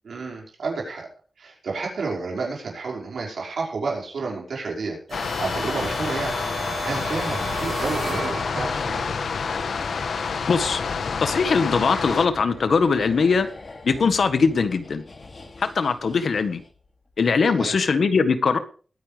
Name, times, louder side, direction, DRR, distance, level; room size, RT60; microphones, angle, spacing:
voice 1, 0.0-1.1 1.4-6.4 6.8-9.0 17.5-17.7, right 4 dB, 75° right, -1 dB, 5.5 m, -30 dB
sound 1, 5.1-12.3, left 5 dB, 85° left, 1.3 m, -28 dB
sound 2, 5.1-9.0, right 4 dB, 50° right, 1.3 m, -34 dB
sound 3, 8.3-16.9 17.1-17.3, left 3 dB, 40° left, 2.8 m, -41 dB
voice 2, 10.5-10.8 11.2-13.5 13.8-15.0 15.6-16.6 17.2-18.6, left 5 dB, 65° left, 10 dB, 1.5 m, -21 dB
21.0 x 10.0 x 3.5 m, 0.40 s
wide cardioid pair, 170°, 0 cm